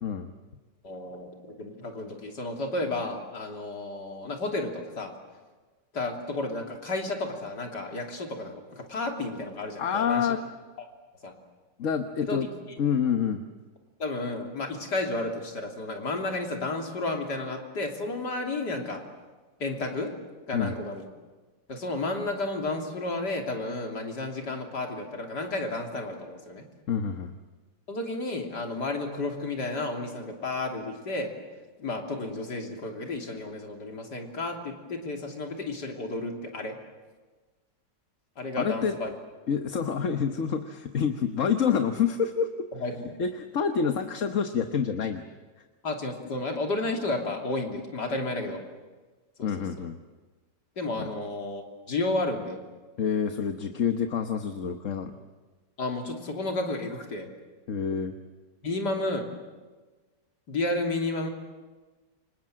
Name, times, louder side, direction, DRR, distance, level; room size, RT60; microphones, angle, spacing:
voice 1, 0.0-0.3 9.8-10.4 11.8-12.5 12.8-13.4 20.5-20.7 26.9-27.3 38.6-39.0 39.5-42.7 43.2-45.2 49.4-50.0 51.0-51.1 53.0-55.1 57.7-58.1, left 7 dB, 50° left, 7 dB, 1.4 m, -27 dB
voice 2, 0.8-1.3 1.6-5.1 5.9-10.3 11.2-11.3 12.2-12.5 14.0-19.0 19.6-20.1 20.5-21.1 21.7-26.6 27.9-31.3 31.8-36.8 38.4-39.1 42.7-43.1 45.8-48.6 49.4-49.5 49.8-49.9 50.8-52.6 55.8-57.3 58.6-59.3 60.5-61.3, left 2 dB, 70° left, 2 dB, 3.7 m, -32 dB
28.5 x 26.0 x 7.7 m, 1.3 s
omnidirectional pair, 1.9 m